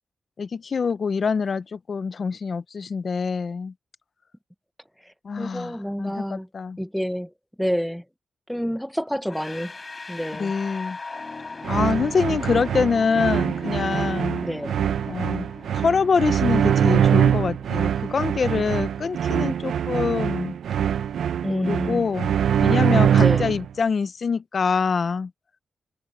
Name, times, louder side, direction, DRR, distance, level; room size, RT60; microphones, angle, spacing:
voice 1, 0.4-3.7 5.2-6.8 10.3-11.0 11.7-14.4 15.1-15.5 15.7-20.6 21.5-22.3 22.6-25.3, left 5 dB, 40° left, 0.6 m, -25 dB
voice 2, 5.4-6.5 6.8-7.3 7.6-8.0 8.5-9.7 10.1-10.5 14.4-14.7 21.4-22.1 23.2-23.6, equal, ahead, 0.8 m, -28 dB
sound 1, 9.3-20.2, left 3 dB, 25° left, 5.4 m, -40 dB
sound 2, 11.6-23.7, right 9 dB, 90° right, 0.7 m, -23 dB
wide cardioid pair, 165°, 0 cm